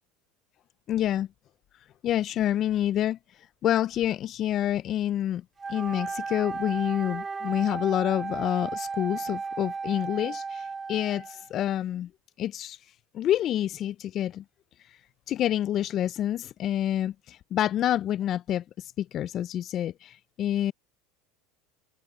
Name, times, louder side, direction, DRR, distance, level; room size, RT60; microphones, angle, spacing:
voice 1, 0.9-1.3 2.0-3.2 3.6-5.4 5.7-12.1 12.4-12.8 13.1-14.4 15.3-20.7, left 11 dB, 45° left, 0.4 m, -28 dB
Wind instrument woodwind instrument, 5.6-11.5, right 4 dB, 20° right, 0.6 m, -35 dB
open air
supercardioid pair, 105°, 0 cm